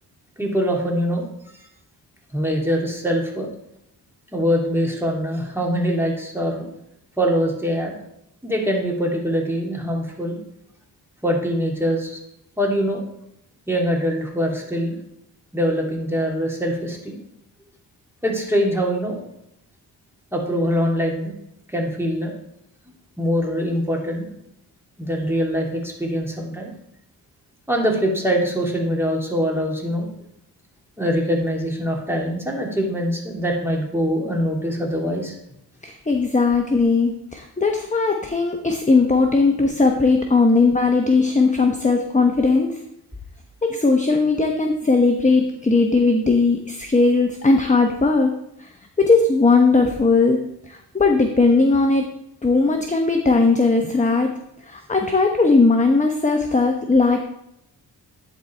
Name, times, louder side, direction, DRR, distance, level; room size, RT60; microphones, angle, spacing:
voice 1, 0.4-1.3 2.3-3.5 4.3-6.7 7.2-8.0 8.4-10.4 11.2-12.2 12.6-13.0 13.7-15.0 15.5-17.2 18.2-19.2 20.3-21.3 21.7-22.3 23.2-24.3 25.0-26.7 27.7-30.1 31.0-35.3, equal, 5° right, -1 dB, 2.8 m, -23 dB
voice 2, 35.8-42.8 43.6-48.3 48.6-48.7 49.0-52.1 52.4-54.3 54.6-57.2, left 3 dB, 15° left, 3 dB, 1.0 m, -18 dB
10.5 x 4.2 x 4.5 m, 0.78 s
cardioid pair, 55°, 42 cm